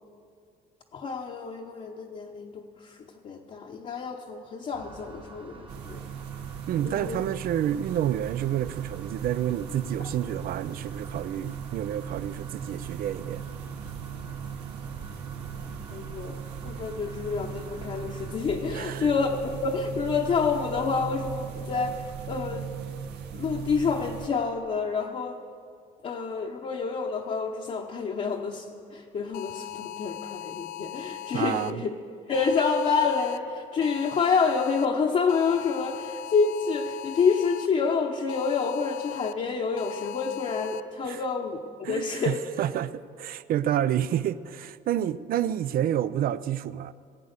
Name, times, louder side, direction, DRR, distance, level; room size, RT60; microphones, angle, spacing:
voice 1, 0.9-6.0 6.8-7.2 15.9-22.7 23.3-25.4 26.0-31.9 32.3-42.4, left 5 dB, 40° left, -1 dB, 0.9 m, -28 dB
sound 1, 4.7-18.4, right 4 dB, 30° right, 1.1 m, -47 dB
sound 2, 5.7-24.3, right 7 dB, 85° right, 1.1 m, -38 dB
voice 2, 6.7-13.4 18.7-19.1 31.3-31.8 41.0-41.2 41.8-46.9, right 11 dB, 60° right, 16 dB, 0.5 m, -29 dB
sound 3, 29.3-31.7 32.3-33.4 33.8-34.9 35.3-37.7 38.3-39.3 39.8-40.8, left 14 dB, 65° left, 0.4 m, -39 dB
17.5 x 8.4 x 6.6 m, 2.3 s
cardioid pair, 110°, 17 cm